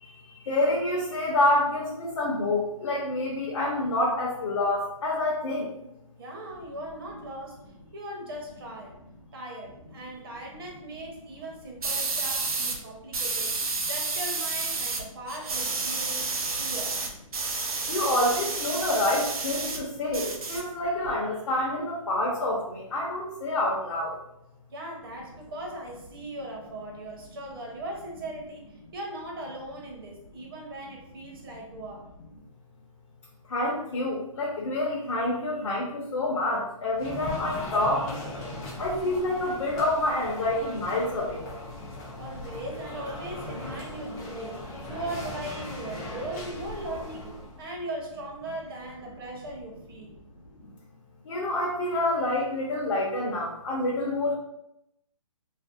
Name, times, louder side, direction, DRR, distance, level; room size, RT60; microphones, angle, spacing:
voice 1, 0.0-5.7 17.9-24.2 33.5-38.1 38.8-41.4 51.2-54.4, left 1 dB, 55° left, -4 dB, 0.6 m, -27 dB
voice 2, 6.2-7.6 7.9-9.0 9.3-13.5 13.9-17.0 24.7-32.0 42.1-44.6 44.9-50.1, right 1 dB, 40° right, 0 dB, 0.7 m, -39 dB
sound 1, 11.8-12.8 13.1-15.0 15.3-19.8 20.1-21.1, right 3 dB, 80° right, 0.5 m, -30 dB
sound 2, 36.9-47.6, left 2 dB, 10° left, 0.3 m, -38 dB
2.5 x 2.1 x 2.4 m, 0.83 s
hypercardioid pair, 145°, 18 cm